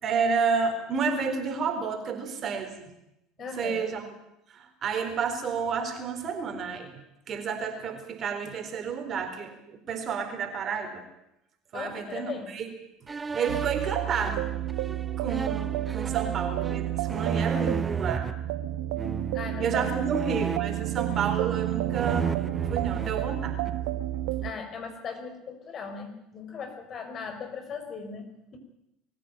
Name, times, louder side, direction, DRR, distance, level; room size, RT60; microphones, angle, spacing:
voice 1, 0.0-2.9 3.6-4.0 4.5-6.9 7.3-11.0 11.7-12.7 13.3-14.5 15.2-18.3 19.6-22.3 22.7-23.6, right 5 dB, 40° right, 6 dB, 4.4 m, -30 dB
voice 2, 3.4-3.9 11.7-12.5 19.3-20.1 24.4-28.6, left 6 dB, 40° left, 6 dB, 5.3 m, -38 dB
sound 1, 13.1-18.3 19.0-19.5 20.1-21.6 21.9-23.9, right 5 dB, 25° right, 0.8 m, -34 dB
sound 2, 13.5-24.5, right 14 dB, 65° right, 1.2 m, -30 dB
23.0 x 15.0 x 9.1 m, 0.84 s
hypercardioid pair, 70°, 0 cm